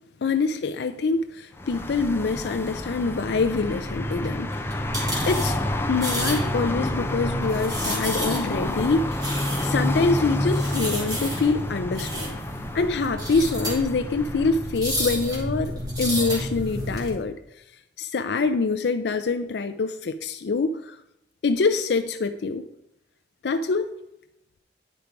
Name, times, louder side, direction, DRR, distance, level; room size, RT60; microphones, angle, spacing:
voice 1, 0.2-4.7 5.3-5.6 5.9-12.4 12.7-17.4 18.0-21.0 21.4-22.6 23.4-23.9, left 4 dB, 70° left, 9 dB, 0.4 m, -25 dB
sound 1, 1.5-14.8, left 1 dB, 15° left, 0.5 m, -30 dB
sound 2, 3.4-17.1, equal, 20° right, 2.5 m, -30 dB
10.5 x 5.1 x 4.6 m, 0.83 s
head